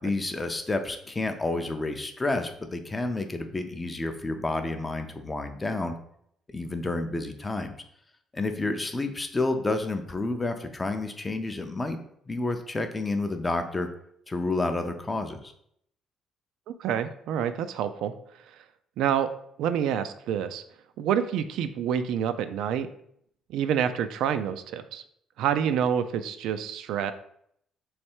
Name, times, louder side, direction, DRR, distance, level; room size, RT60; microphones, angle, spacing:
voice 1, 0.0-5.9 6.5-7.7 8.3-12.0 12.3-13.9 14.3-15.5, left 2 dB, 15° left, 7 dB, 0.4 m, -30 dB
voice 2, 16.8-18.1 19.0-19.3 19.6-20.6 21.0-22.9 23.5-25.0 25.4-27.1, right 8 dB, 80° right, 10 dB, 0.3 m, -27 dB
3.3 x 3.1 x 4.4 m, 0.70 s
cardioid pair, 145°, 0 cm